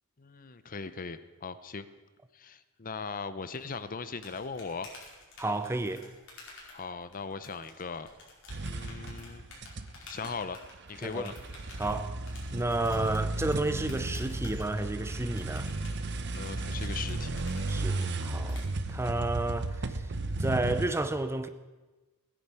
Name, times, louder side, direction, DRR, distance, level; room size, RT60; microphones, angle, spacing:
voice 1, 0.2-1.8 2.3-4.9 6.7-8.1 8.6-9.4 10.0-10.6 10.9-11.3 16.0-17.3, left 4 dB, 40° left, 0.7 m, -39 dB
sound 1, 3.6-18.6, left 3 dB, 60° left, 4.9 m, -52 dB
voice 2, 5.4-6.1 11.0-11.3 11.8-12.2 12.5-15.7 17.7-20.1 20.4-21.5, right 2 dB, 10° right, 0.7 m, -31 dB
sound 2, 8.5-10.0 10.2-20.9, right 2 dB, 50° right, 1.0 m, -34 dB
17.0 x 10.0 x 8.3 m
head